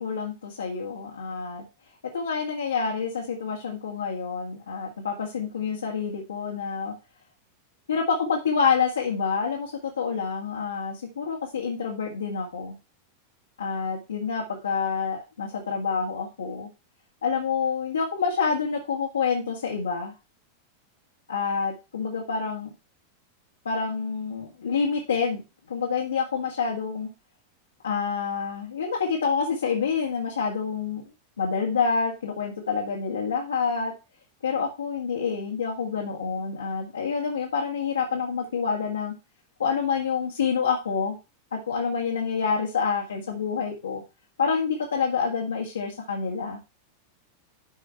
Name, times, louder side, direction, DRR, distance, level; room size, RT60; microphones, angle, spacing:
voice 1, 0.0-1.6 2.1-6.9 7.9-12.7 13.6-16.7 17.2-20.1 21.3-22.7 23.7-25.4 25.7-27.1 27.8-31.0 31.4-33.9 34.4-39.1 39.6-41.2 41.7-44.0 44.4-46.6, left 5 dB, 70° left, -1 dB, 1.8 m, -27 dB
12.0 x 5.0 x 4.5 m, 0.28 s
figure-of-eight pair, 90°, 0 cm